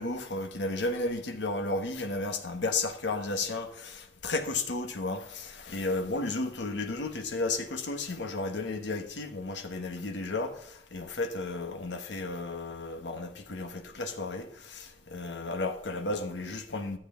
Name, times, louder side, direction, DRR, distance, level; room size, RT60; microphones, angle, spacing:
voice 1, 0.0-10.7 10.9-17.0, left 2 dB, 80° left, 1.2 m, -33 dB
12.5 x 7.8 x 3.7 m
head